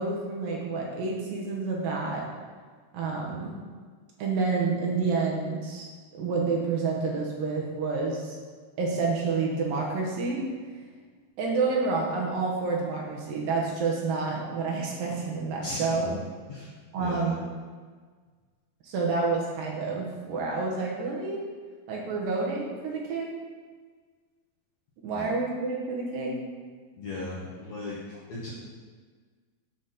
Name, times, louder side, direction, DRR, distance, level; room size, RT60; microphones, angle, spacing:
voice 1, 0.0-2.3 2.9-3.6 4.2-5.9 6.2-8.4 8.8-10.5 11.4-16.2 16.9-17.4 18.8-21.5 21.9-23.4 25.0-26.5, right 4 dB, 70° right, -2 dB, 2.5 m, -29 dB
voice 2, 17.0-17.3 25.1-25.3 27.0-28.0 28.3-28.5, left 2 dB, 70° left, -6 dB, 1.7 m, -36 dB
7.7 x 4.0 x 6.3 m, 1.5 s
omnidirectional pair, 4.5 m